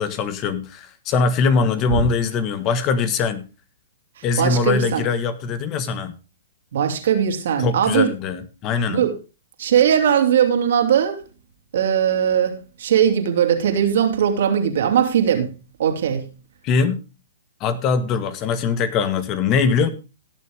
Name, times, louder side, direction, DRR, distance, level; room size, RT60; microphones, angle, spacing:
voice 1, 0.0-3.5 4.2-6.1 7.6-9.0 16.6-17.0 17.6-19.9, left 5 dB, 30° left, 1.6 m, -22 dB
voice 2, 4.2-5.0 6.7-8.1 8.9-9.2 9.6-11.2 11.7-15.5 15.8-16.3, right 8 dB, 65° right, 3.0 m, -19 dB
17.5 x 6.9 x 3.5 m
hypercardioid pair, 130°, 0 cm